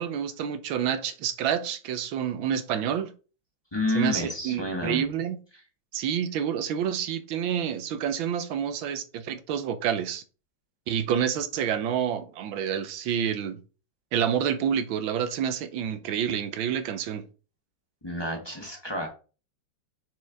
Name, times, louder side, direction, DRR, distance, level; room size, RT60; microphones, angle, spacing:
voice 1, 0.0-3.1 3.9-5.4 5.9-10.2 10.9-13.6 14.1-17.3, right 8 dB, 85° right, 1.5 m, -28 dB
voice 2, 3.7-5.0 18.0-19.1, left 1 dB, 15° left, 1.2 m, -29 dB
6.3 x 4.4 x 3.5 m
omnidirectional pair, 2.1 m